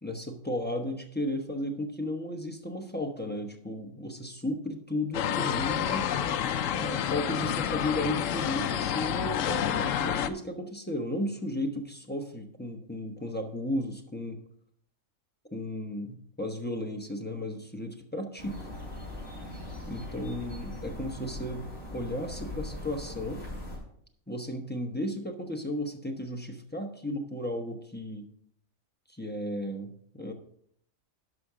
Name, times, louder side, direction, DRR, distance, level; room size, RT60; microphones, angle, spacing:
voice 1, 0.0-6.1 6.7-14.4 15.5-18.7 19.9-23.4 24.3-28.3 29.1-30.3, left 1 dB, 10° left, 3 dB, 0.9 m, -34 dB
sound 1, 5.1-10.3, left 9 dB, 75° left, 1.0 m, -29 dB
sound 2, 18.4-23.8, left 1 dB, 40° left, 4.6 m, -40 dB
11.0 x 6.0 x 4.9 m, 0.68 s
omnidirectional pair, 1.4 m